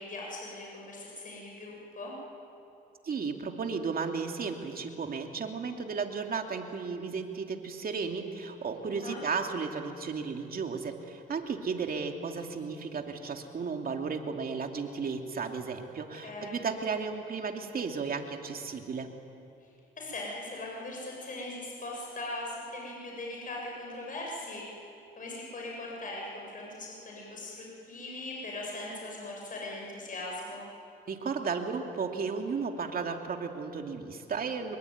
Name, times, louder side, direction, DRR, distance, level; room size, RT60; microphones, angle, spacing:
voice 1, 0.0-2.1 8.9-9.2 16.1-16.6 19.6-19.7 20.0-24.6 25.2-30.6, left 2 dB, 45° left, -2 dB, 7.4 m, -40 dB
voice 2, 3.0-19.1 31.1-34.8, right 5 dB, 50° right, 4 dB, 2.7 m, -34 dB
25.5 x 22.5 x 9.6 m, 2.7 s
cardioid pair, 90°, 20 cm